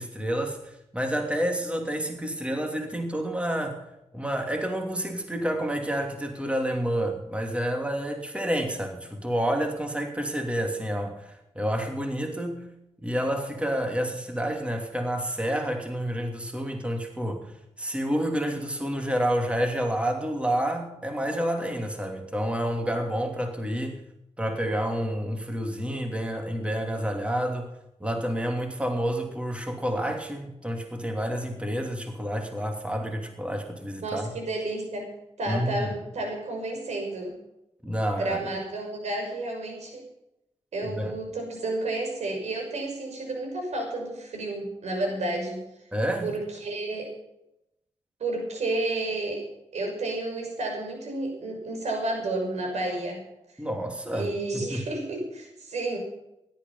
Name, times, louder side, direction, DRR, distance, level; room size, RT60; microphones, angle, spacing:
voice 1, 0.0-3.8 4.1-12.7 13.0-24.0 24.4-27.7 28.0-34.3 35.5-35.9 37.8-38.4 40.8-41.2 45.9-46.3 53.6-54.8, equal, 10° right, 4 dB, 2.9 m, -29 dB
voice 2, 34.0-35.1 35.4-37.3 38.1-40.0 40.7-45.6 46.2-47.1 48.2-49.4 49.7-53.2 54.1-56.0, right 2 dB, 85° right, 2 dB, 6.2 m, -31 dB
17.0 x 12.0 x 5.6 m, 0.86 s
cardioid pair, 80°, 11 cm